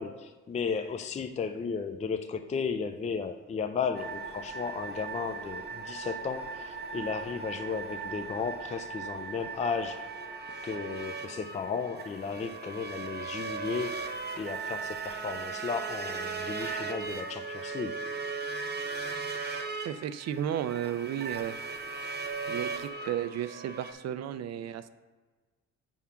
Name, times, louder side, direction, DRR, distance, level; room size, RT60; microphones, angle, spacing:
voice 1, 0.0-10.1 10.6-13.9 14.4-18.0, left 5 dB, 25° left, 7 dB, 0.4 m, -34 dB
sound 1, 3.9-23.9, right 4 dB, 35° right, 0.9 m, -38 dB
voice 2, 19.8-21.6 22.5-24.9, right 10 dB, 60° right, 12 dB, 0.4 m, -33 dB
7.2 x 3.6 x 5.7 m, 1.3 s
cardioid pair, 90°, 30 cm